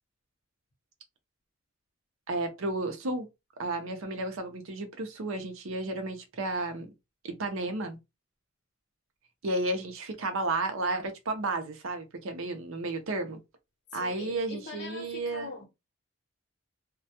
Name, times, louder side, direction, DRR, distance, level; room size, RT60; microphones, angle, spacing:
voice 1, 2.3-3.3 3.6-6.9 7.2-8.0 9.4-13.4 13.9-15.5, right 2 dB, 80° right, 0.6 m, -32 dB
voice 2, 13.9-15.6, left 3 dB, 55° left, 0.8 m, -42 dB
2.2 x 2.1 x 2.8 m
head